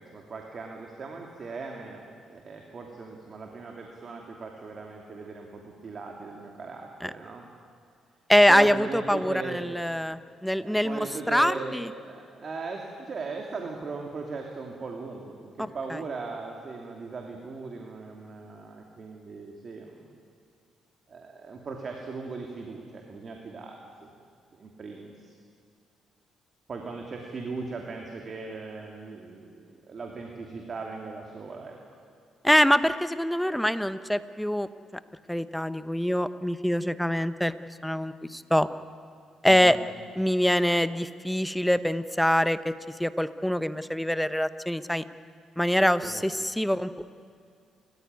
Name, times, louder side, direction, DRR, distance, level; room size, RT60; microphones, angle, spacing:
voice 1, 0.0-2.0 2.3-7.4 8.5-9.7 10.6-20.1 21.1-24.1 24.5-25.3 26.7-29.5 29.9-31.8 39.4-39.8 46.0-46.2, right 4 dB, 45° right, 1 dB, 2.9 m, -38 dB
voice 2, 8.3-11.9 15.9-16.0 32.4-34.7 35.3-37.5 37.8-38.7 39.4-39.8 40.1-42.7 43.0-45.0 45.6-47.1, equal, 5° left, 12 dB, 0.9 m, -24 dB
29.5 x 15.0 x 9.6 m, 2.4 s
cardioid pair, 90°, 0 cm